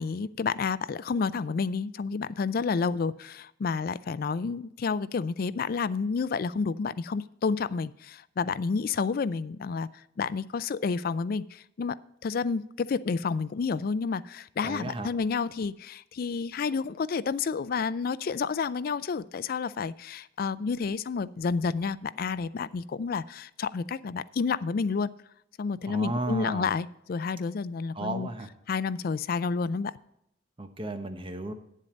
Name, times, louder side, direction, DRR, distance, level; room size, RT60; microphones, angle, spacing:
voice 1, 0.0-9.9 10.2-25.1 25.6-28.3 28.7-29.9, left 5 dB, 50° left, 17 dB, 0.4 m, -30 dB
voice 2, 14.6-15.1 25.9-26.7 27.9-28.5 30.6-31.5, right 2 dB, 30° right, 7 dB, 0.9 m, -33 dB
9.2 x 7.5 x 5.2 m, 0.77 s
head